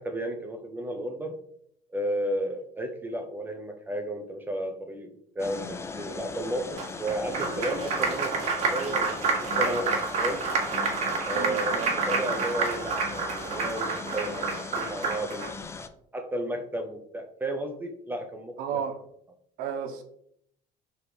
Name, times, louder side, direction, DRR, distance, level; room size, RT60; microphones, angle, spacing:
voice 1, 0.0-1.4 1.9-8.3 8.7-10.4 11.3-15.5 16.1-18.8, right 1 dB, 15° right, 4 dB, 0.8 m, -33 dB
sound 1, 5.4-15.9, left 4 dB, 20° left, 0.5 m, -39 dB
Applause, 6.8-15.5, right 4 dB, 50° right, 1.7 m, -29 dB
voice 2, 11.3-12.0 18.6-18.9 19.6-20.0, right 7 dB, 80° right, 5 dB, 1.2 m, -33 dB
5.3 x 3.7 x 5.0 m, 0.68 s
cardioid pair, 130°, 15 cm